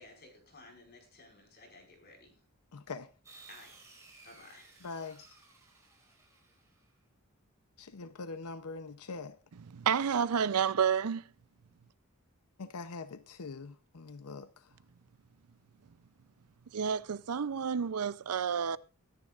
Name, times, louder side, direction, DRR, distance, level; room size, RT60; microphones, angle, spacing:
voice 1, 0.0-2.4 3.5-3.8 4.2-4.8, left 2 dB, 45° left, 5.1 m, -55 dB
voice 2, 2.7-3.1 4.8-5.2 7.8-9.4 12.6-14.7, left 4 dB, 90° left, 0.7 m, -43 dB
sound 1, 3.2-6.9, right 3 dB, 15° right, 5.2 m, -57 dB
voice 3, 9.7-11.2 16.7-18.8, right 7 dB, 90° right, 0.6 m, -30 dB
23.5 x 10.5 x 2.5 m
head